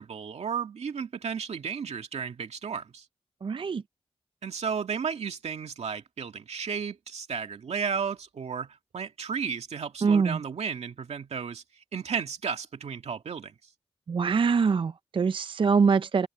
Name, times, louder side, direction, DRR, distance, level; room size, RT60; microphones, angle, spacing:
voice 1, 0.0-3.0 4.4-11.6 11.9-13.6, right 6 dB, 85° right, 2.2 m, -33 dB
voice 2, 3.4-3.8 10.0-10.4 14.1-16.3, right 5 dB, 50° right, 0.4 m, -24 dB
cardioid pair, 60°, 11 cm